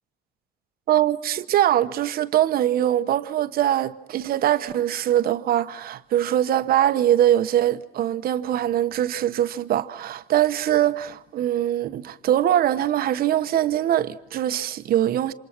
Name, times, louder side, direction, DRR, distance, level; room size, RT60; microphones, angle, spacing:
voice 1, 0.9-15.3, right 11 dB, 60° right, 1.1 m, -22 dB
28.5 x 26.5 x 6.0 m
cardioid pair, 110°, 17 cm